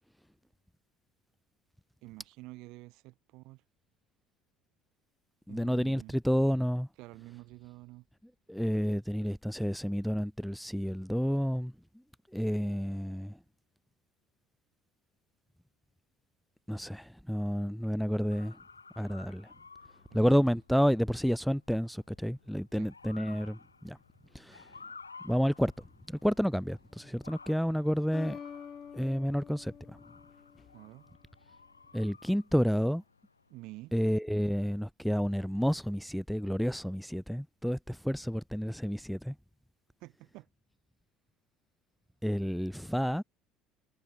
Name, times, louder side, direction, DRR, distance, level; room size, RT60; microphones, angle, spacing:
voice 1, 2.0-3.6 5.5-6.2 7.0-8.1 20.1-20.4 22.7-22.9 30.7-31.1 33.5-33.9 40.0-40.5, right 21 dB, 60° right, 7.9 m, -49 dB
voice 2, 5.5-6.9 8.5-11.7 12.3-13.4 16.7-18.6 19.0-19.5 20.1-24.0 24.3-24.7 25.2-25.7 26.1-28.4 28.9-30.0 31.9-33.0 33.9-39.3 42.2-43.2, equal, ahead, 1.4 m, -30 dB
Motor vehicle (road) / Siren, 18.3-33.9, left 4 dB, 85° left, 4.6 m, -55 dB
sound 1, 26.9-27.4 28.1-31.0, left 7 dB, 35° left, 2.1 m, -47 dB
figure-of-eight pair, 60°, 0 cm